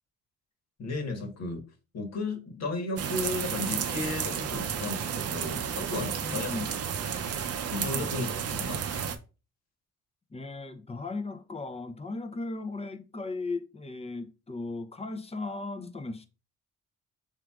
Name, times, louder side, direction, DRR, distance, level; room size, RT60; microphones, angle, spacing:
voice 1, 0.8-1.6 1.9-6.6 7.1-7.3 7.7-9.0, left 2 dB, 60° left, 1.5 m, -34 dB
sound 1, 3.0-9.2, right 7 dB, 55° right, 0.6 m, -32 dB
voice 2, 6.2-6.7 10.3-16.3, left 3 dB, 20° left, 0.6 m, -36 dB
5.9 x 3.6 x 2.4 m
cardioid pair, 90°, 30 cm